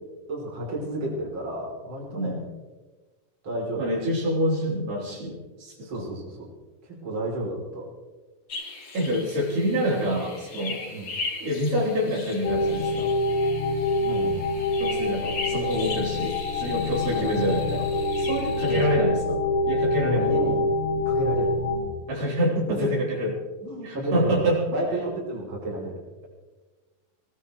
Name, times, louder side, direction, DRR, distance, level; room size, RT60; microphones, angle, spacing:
voice 1, 0.3-2.4 3.4-3.8 5.8-6.4 6.8-7.8 10.9-11.1 14.0-14.5 17.1-17.3 18.7-18.8 20.0-20.6 21.1-21.5 23.6-24.4 24.7-25.9, right 1 dB, 35° right, -2 dB, 3.8 m, -31 dB
voice 2, 2.1-2.5 3.8-6.0 8.9-10.8 11.4-13.1 14.8-17.9 18.2-20.2 22.1-23.3 23.8-24.6, equal, 70° right, -4 dB, 5.1 m, -27 dB
sound 1, 8.5-18.9, left 3 dB, 40° left, 2.4 m, -38 dB
sound 2, 12.4-21.8, left 2 dB, 55° left, 3.4 m, -26 dB
20.5 x 17.0 x 3.1 m, 1.3 s
omnidirectional pair, 4.1 m